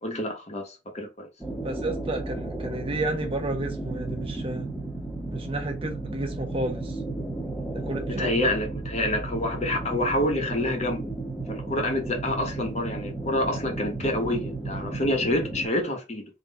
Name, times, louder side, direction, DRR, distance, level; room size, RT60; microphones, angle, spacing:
voice 1, 0.0-1.3 8.1-11.1 11.5-16.3, left 1 dB, 40° left, 1.0 m, -27 dB
sound 1, 1.4-15.7, right 2 dB, ahead, 1.1 m, -34 dB
voice 2, 1.6-4.7 5.3-7.0 7.8-8.3, right 2 dB, 30° right, 0.8 m, -31 dB
3.8 x 2.4 x 4.0 m
head